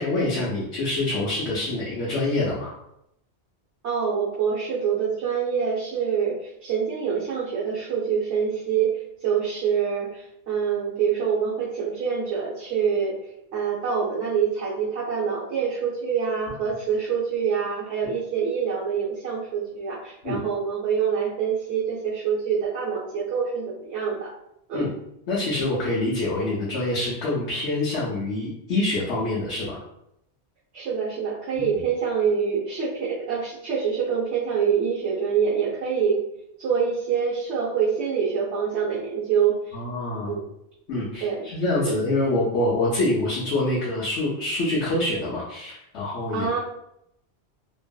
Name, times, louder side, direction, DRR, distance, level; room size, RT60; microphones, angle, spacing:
voice 1, 0.0-2.7 20.2-20.4 24.7-24.9 25.3-29.8 39.7-40.4 40.9-46.6, left 2 dB, 85° left, -7 dB, 1.0 m, -26 dB
voice 2, 3.8-13.2 13.5-24.3 24.7-24.8 30.7-36.2 36.6-39.7 40.2-40.4 41.2-41.5 41.8-41.9 46.3-46.6, right 6 dB, 90° right, -6 dB, 1.0 m, -25 dB
2.9 x 2.6 x 2.2 m, 0.80 s
omnidirectional pair, 1.1 m